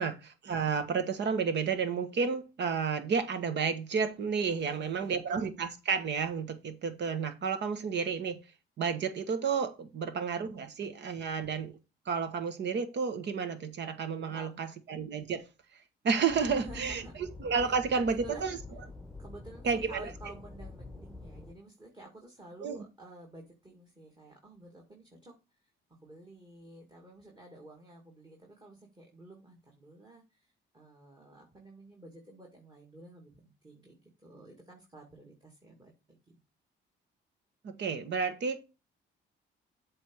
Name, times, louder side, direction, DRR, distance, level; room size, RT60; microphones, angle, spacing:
voice 1, 0.0-8.4 8.8-11.7 12.0-15.5 15.7-18.6 19.6-20.1 22.6-22.8 37.6-38.6, right 5 dB, 60° right, 1.3 m, -31 dB
voice 2, 4.5-5.2 14.1-14.8 16.5-17.1 17.6-18.6 19.2-25.3 25.9-36.2, right 1 dB, 20° right, 2.2 m, -51 dB
sound 1, 16.3-21.5, left 2 dB, ahead, 1.1 m, -47 dB
7.9 x 3.5 x 6.3 m
cardioid pair, 90°, 20 cm